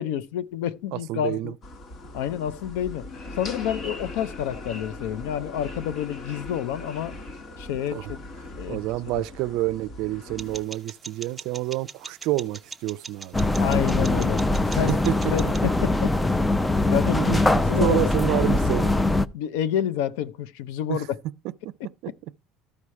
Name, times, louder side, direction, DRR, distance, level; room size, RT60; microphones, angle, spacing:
voice 1, 0.0-1.5 2.1-3.1 3.4-7.2 7.6-8.2 8.5-8.8 9.1-9.2 13.6-14.4 14.7-15.0 15.3-16.1 16.8-17.4 17.7-18.1 19.3-21.2, left 10 dB, 85° left, 0.6 m, -28 dB
voice 2, 0.9-1.5 7.9-8.1 8.7-13.4 14.7-15.5 17.1-18.9 20.9-21.0 21.6-21.7, right 17 dB, 65° right, 0.4 m, -28 dB
sound 1, 1.6-10.6, left 2 dB, 40° left, 1.3 m, -39 dB
sound 2, 10.4-15.7, right 4 dB, 10° right, 0.8 m, -42 dB
sound 3, 13.3-19.3, left 2 dB, 10° left, 0.4 m, -22 dB
13.5 x 4.9 x 4.3 m
cardioid pair, 140°, 0 cm